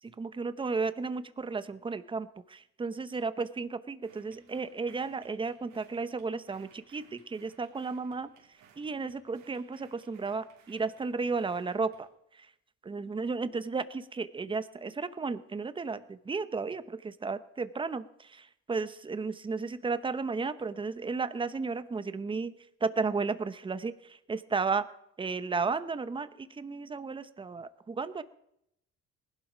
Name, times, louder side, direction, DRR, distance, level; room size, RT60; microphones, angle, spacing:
voice 1, 0.0-8.3 8.8-12.1 12.3-12.5 12.8-24.9 25.2-28.2, right 4 dB, 15° right, 13 dB, 0.8 m, -34 dB
sound 1, 4.0-12.1, right 7 dB, 70° right, 3.3 m, -61 dB
19.5 x 11.5 x 5.1 m, 0.77 s
cardioid pair, 125°, 29 cm